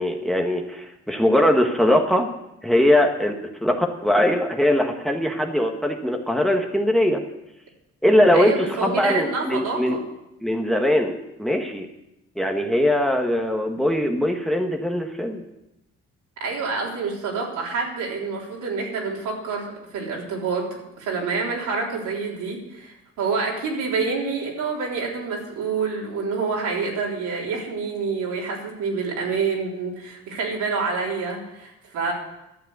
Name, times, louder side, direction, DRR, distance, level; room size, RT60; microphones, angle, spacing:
voice 1, 0.0-2.3 2.6-3.3 3.6-7.2 8.0-10.0 10.4-11.1 11.4-11.9 12.4-15.4, left 1 dB, ahead, 4 dB, 1.3 m, -21 dB
voice 2, 8.3-10.0 16.4-32.1, right 4 dB, 85° right, -3 dB, 3.9 m, -27 dB
12.0 x 7.3 x 8.0 m, 0.91 s
cardioid pair, 90°, 30 cm